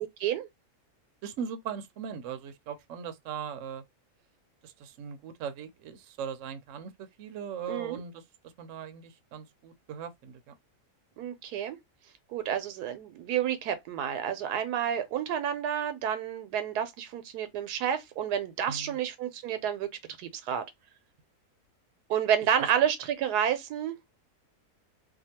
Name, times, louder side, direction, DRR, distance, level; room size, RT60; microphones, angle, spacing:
voice 1, 1.2-3.8 4.6-8.2 8.6-10.5 18.7-19.0 22.6-22.7, right 7 dB, 65° right, 0.8 m, -39 dB
voice 2, 7.7-8.0 11.2-11.8 12.3-19.9 20.2-20.6 22.1-24.0, right 9 dB, 90° right, 1.2 m, -30 dB
2.7 x 2.3 x 2.8 m
omnidirectional pair, 1.6 m